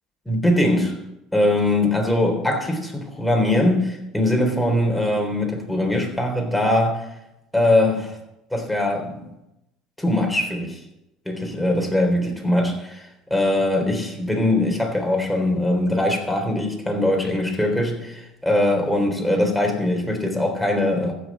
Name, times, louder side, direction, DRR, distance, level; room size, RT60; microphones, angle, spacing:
voice 1, 0.3-1.0 1.3-7.1 7.5-8.2 8.5-9.3 10.0-10.8 11.3-21.1, left 1 dB, 5° left, 3.8 m, -21 dB
15.0 x 6.6 x 7.4 m
supercardioid pair, 85°, 0 cm